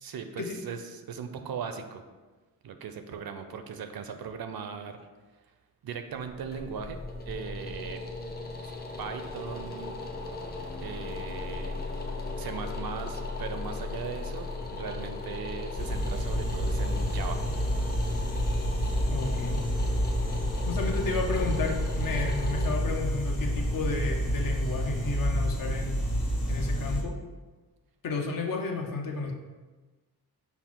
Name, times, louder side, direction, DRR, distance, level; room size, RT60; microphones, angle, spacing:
voice 1, 0.0-2.0 2.6-5.0 5.8-7.0 7.3-8.0 9.0-10.0 10.8-11.8 12.4-17.4, right 6 dB, 70° right, 7 dB, 0.5 m, -38 dB
sound 1, 6.2-25.1, left 3 dB, 25° left, 0.6 m, -37 dB
sound 2, 15.8-27.0, equal, 85° left, 1.3 m, -29 dB
voice 2, 19.1-19.6 20.7-26.0 26.5-27.1 28.0-29.3, left 3 dB, 65° left, 2 dB, 0.7 m, -32 dB
5.7 x 2.0 x 4.5 m, 1.3 s
wide cardioid pair, 100°, 37 cm